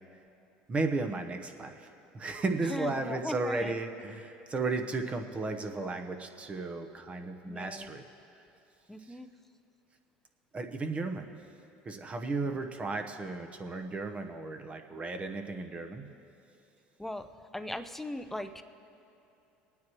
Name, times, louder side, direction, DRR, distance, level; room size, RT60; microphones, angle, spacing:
voice 1, 0.7-1.9 2.1-8.0 10.5-11.3 11.9-16.1, right 3 dB, 30° right, 5 dB, 1.0 m, -34 dB
voice 2, 2.7-3.8 7.5-7.9 8.9-9.3 17.0-17.3 17.5-18.6, left 1 dB, 5° left, 9 dB, 0.6 m, -38 dB
23.5 x 9.4 x 3.1 m, 2.8 s
supercardioid pair, 95°, 4 cm